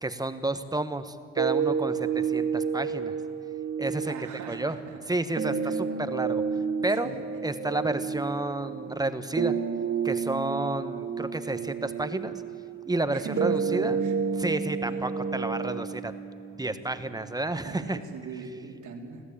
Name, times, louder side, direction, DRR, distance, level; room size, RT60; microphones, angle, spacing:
voice 1, 0.0-3.1 3.8-4.1 4.5-4.8 5.1-6.4 6.8-7.1 7.4-9.5 10.0-12.4 12.9-14.0 14.4-16.1 16.6-18.0, right 2 dB, 10° right, 10 dB, 1.3 m, -31 dB
sound 1, 1.4-17.4, right 6 dB, 40° right, 1.7 m, -31 dB
voice 2, 4.0-5.0 5.6-5.7 7.0-7.1 13.1-14.1 14.8-15.0 17.6-19.2, right 5 dB, 80° right, 2 dB, 3.1 m, -40 dB
25.5 x 15.5 x 8.7 m, 2.2 s
cardioid pair, 90°, 30 cm